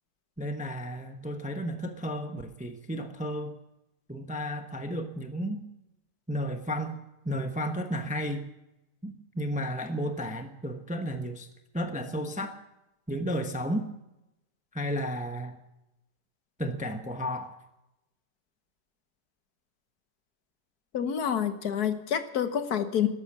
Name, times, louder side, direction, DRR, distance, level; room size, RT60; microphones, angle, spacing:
voice 1, 0.4-3.5 4.1-5.7 6.3-7.0 7.2-8.5 9.0-11.5 11.7-12.6 13.1-13.9 14.7-15.6 16.6-17.5, equal, 5° right, 7 dB, 0.7 m, -33 dB
voice 2, 20.9-23.1, left 9 dB, 65° left, 10 dB, 1.5 m, -28 dB
13.0 x 12.0 x 7.3 m, 0.94 s
omnidirectional pair, 1.8 m